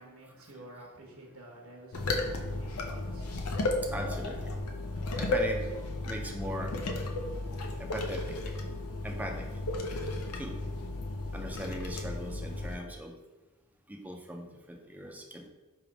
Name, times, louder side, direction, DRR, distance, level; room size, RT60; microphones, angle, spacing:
voice 1, 0.0-3.5, right 1 dB, 70° right, -1 dB, 1.2 m, -50 dB
sound 1, 1.9-12.8, left 2 dB, 85° left, 0.6 m, -34 dB
voice 2, 3.8-4.6 5.2-5.6 6.0-6.8 7.8-8.5 9.0-9.5 10.3-10.6 11.3-13.1 13.9-15.5, equal, 5° right, 1 dB, 0.5 m, -39 dB
3.4 x 3.0 x 4.8 m, 1.2 s
head